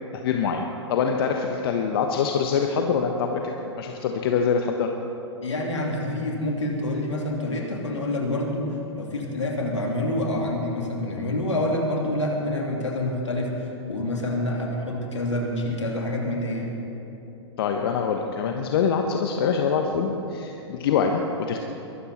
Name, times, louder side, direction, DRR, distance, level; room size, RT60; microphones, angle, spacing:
voice 1, 0.1-4.9 17.6-21.2 21.5-21.6, left 6 dB, 55° left, 3 dB, 1.1 m, -24 dB
voice 2, 5.4-8.7 8.9-16.7, left 1 dB, 80° left, 0 dB, 2.9 m, -27 dB
22.5 x 12.5 x 4.3 m, 2.9 s
figure-of-eight pair, 105°, 15 cm